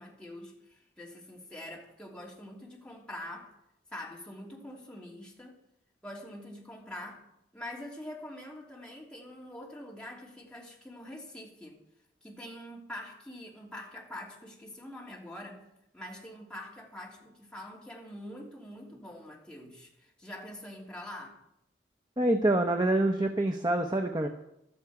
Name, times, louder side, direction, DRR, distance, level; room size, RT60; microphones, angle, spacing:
voice 1, 0.0-3.5 3.9-5.6 6.0-7.2 7.5-11.8 12.2-15.7 15.9-21.4, left 1 dB, 5° left, -3 dB, 2.9 m, -45 dB
voice 2, 22.2-24.3, right 1 dB, 20° right, 5 dB, 0.8 m, -26 dB
16.0 x 12.5 x 4.9 m, 0.81 s
head